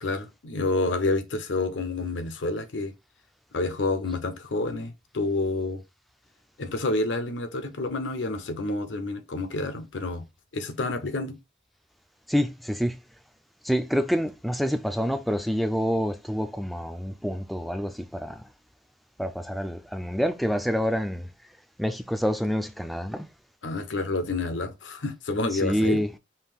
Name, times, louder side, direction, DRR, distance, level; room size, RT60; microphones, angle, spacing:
voice 1, 0.0-2.9 3.5-5.8 6.6-10.2 10.5-11.4 23.6-26.0, left 2 dB, 85° left, 0.7 m, -29 dB
voice 2, 12.3-13.0 13.6-18.5 19.2-21.3 21.8-23.3 25.5-26.1, equal, ahead, 0.3 m, -27 dB
5.5 x 2.6 x 3.4 m
head